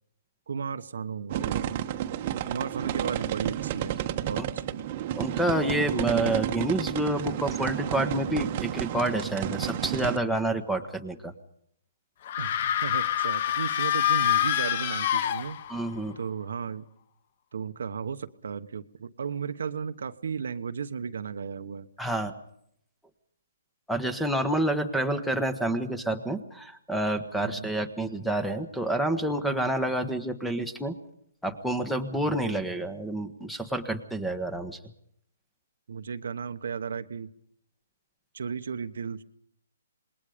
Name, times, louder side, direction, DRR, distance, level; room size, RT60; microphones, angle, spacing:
voice 1, 0.5-1.8 2.5-4.0 4.2-4.8 12.4-15.6 16.2-16.8 17.5-21.9 27.4-27.7 32.2-32.7 35.9-37.3 38.3-39.2, right 6 dB, 70° right, 9 dB, 1.2 m, -35 dB
sound 1, 1.3-10.2, right 11 dB, 35° right, 1.3 m, -31 dB
voice 2, 5.1-11.3 15.7-16.2 22.0-22.3 23.9-30.9 31.4-34.8, right 1 dB, ahead, 10 dB, 1.4 m, -28 dB
sound 2, 12.3-15.9, left 11 dB, 45° left, 0.9 m, -26 dB
27.0 x 20.5 x 5.2 m, 0.69 s
hypercardioid pair, 155°, 0 cm